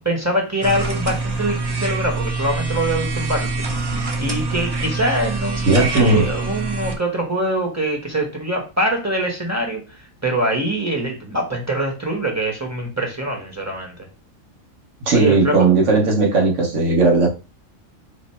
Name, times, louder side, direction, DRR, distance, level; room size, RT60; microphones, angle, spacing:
voice 1, 0.0-3.7 4.2-13.9 15.1-15.7, right 1 dB, 15° right, 0.9 m, -23 dB
sound 1, 0.6-7.0, right 3 dB, 30° right, 0.5 m, -25 dB
voice 2, 5.7-6.3 15.1-17.3, right 3 dB, 65° right, 1.5 m, -16 dB
4.6 x 2.0 x 4.3 m
omnidirectional pair, 1.4 m